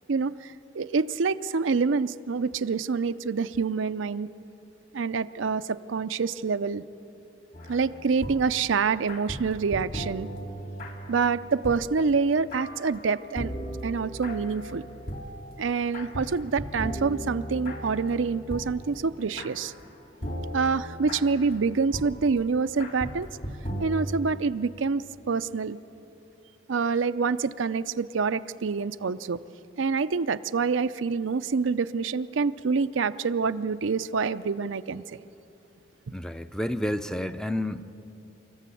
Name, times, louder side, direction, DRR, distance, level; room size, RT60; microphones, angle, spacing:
voice 1, 0.1-4.3 4.9-6.8 7.7-10.3 11.1-13.5 13.8-14.8 15.6-19.7 20.5-23.3 23.8-25.8 26.7-29.4 29.8-35.2, right 5 dB, 85° right, 12 dB, 0.5 m, -26 dB
sound 1, 7.5-19.9 20.2-24.3, equal, 50° left, 2.2 m, -38 dB
voice 2, 36.1-37.8, left 1 dB, 5° left, 10 dB, 0.5 m, -30 dB
26.0 x 14.0 x 8.4 m, 2.9 s
head